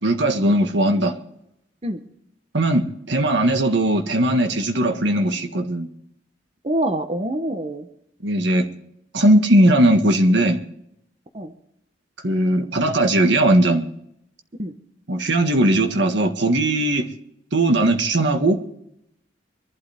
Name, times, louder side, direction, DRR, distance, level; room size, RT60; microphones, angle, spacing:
voice 1, 0.0-1.1 2.5-5.9 8.2-8.7 9.1-10.6 12.2-13.8 15.1-17.1 17.5-18.6, right 1 dB, 65° right, 5 dB, 1.6 m, -18 dB
voice 2, 6.6-7.9 11.3-11.5 14.6-14.8, right 1 dB, 35° right, 7 dB, 1.1 m, -25 dB
24.0 x 11.5 x 3.6 m, 0.76 s
head